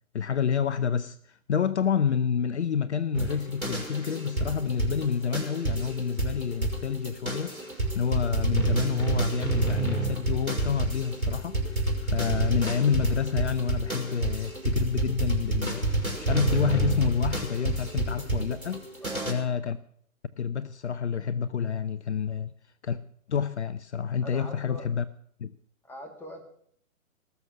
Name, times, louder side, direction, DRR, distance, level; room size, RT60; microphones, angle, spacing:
voice 1, 0.1-18.9 19.3-19.8 20.4-22.5 22.8-23.0 23.3-25.0 25.4-25.5, left 7 dB, 55° left, 0.8 m, -28 dB
sound 1, 3.1-19.3, right 2 dB, 85° right, 5.3 m, -29 dB
voice 2, 19.0-19.5 24.2-24.8 25.8-26.4, equal, 5° left, 2.5 m, -41 dB
18.5 x 7.4 x 9.4 m
figure-of-eight pair, 130°, 41 cm